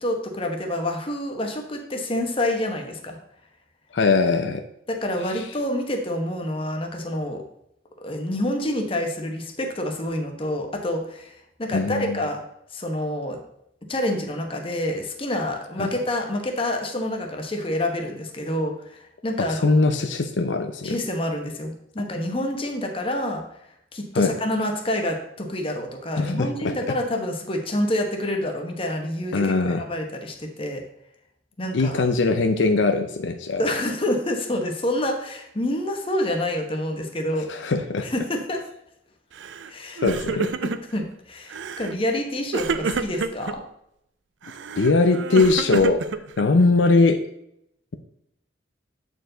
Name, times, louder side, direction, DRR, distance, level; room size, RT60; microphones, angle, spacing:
voice 1, 0.0-3.2 4.9-7.4 8.0-12.4 12.7-13.4 13.9-19.7 20.8-23.4 23.9-30.8 31.6-32.0 33.6-37.5 38.0-38.6 39.7-40.0 40.6-43.6, left 1 dB, 30° left, 3 dB, 1.0 m, -27 dB
voice 2, 3.9-4.6 11.7-12.2 15.8-15.9 19.4-21.0 24.1-24.3 26.2-26.7 29.3-29.8 31.7-33.6 37.5-38.1 40.0-40.5 44.8-46.0 46.4-47.2, left 3 dB, 75° left, 7 dB, 0.6 m, -21 dB
Crying sobbing, 39.4-39.7 40.0-41.0 41.5-42.0 42.5-43.6 44.4-46.7, right 4 dB, 75° right, 0.5 m, -29 dB
8.3 x 4.6 x 3.9 m, 0.77 s
head